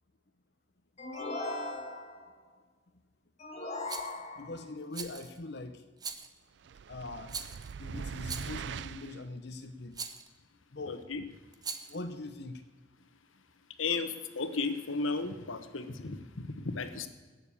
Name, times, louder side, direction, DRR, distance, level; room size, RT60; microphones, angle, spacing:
sound 1, 1.0-2.3 3.4-4.7, left 2 dB, 35° left, 1.7 m, -38 dB
Rattle, 3.9-4.2 4.9-5.4 6.0-6.4 7.3-7.7 8.2-8.7 9.9-10.3 11.5-12.0, right 5 dB, 20° right, 0.7 m, -41 dB
voice 1, 4.3-5.9 6.9-7.4 7.8-10.0 10.7-11.1 11.9-12.6, left 2 dB, 55° left, 6 dB, 0.8 m, -42 dB
sound 2, 6.6-9.2, right 6 dB, 60° right, 0.4 m, -41 dB
voice 2, 10.9-11.2 13.8-17.1, left 4 dB, 85° left, 9 dB, 1.2 m, -34 dB
17.5 x 6.9 x 8.5 m, 1.3 s
head